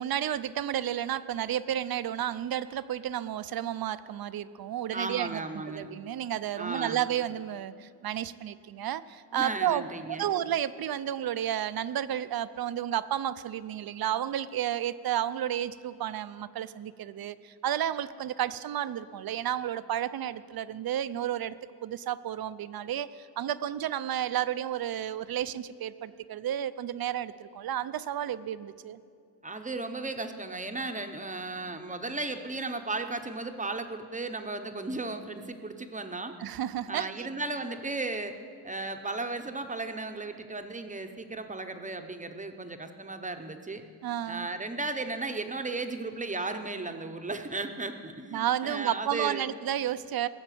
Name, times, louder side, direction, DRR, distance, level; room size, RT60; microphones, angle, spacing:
voice 1, 0.0-5.4 5.7-21.5 21.8-29.0 36.4-37.3 44.0-44.5 48.3-50.3, right 11 dB, 60° right, 15 dB, 0.5 m, -32 dB
voice 2, 4.9-5.9 6.6-7.0 9.3-10.3 29.4-36.4 36.9-38.3 38.6-43.8 44.3-49.5, right 3 dB, 20° right, 6 dB, 0.8 m, -35 dB
18.5 x 7.2 x 9.2 m, 2.3 s
wide cardioid pair, 155°, 40 cm